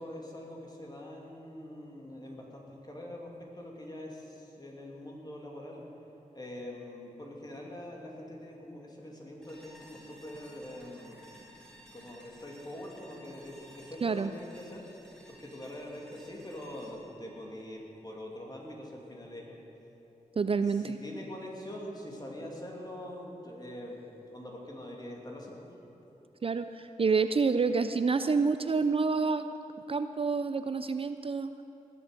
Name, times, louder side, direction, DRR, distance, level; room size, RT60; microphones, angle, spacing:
voice 1, 0.0-5.8 6.3-11.5 11.9-14.8 15.4-19.6 20.6-24.0 24.3-25.7, left 1 dB, 30° left, -1 dB, 2.7 m, -44 dB
sound 1, 9.4-18.5, equal, 5° left, 3.3 m, -55 dB
voice 2, 20.4-21.0 26.4-29.4 29.9-31.5, right 4 dB, 40° right, 10 dB, 0.4 m, -28 dB
19.5 x 7.1 x 6.7 m, 2.9 s
cardioid pair, 70°, 14 cm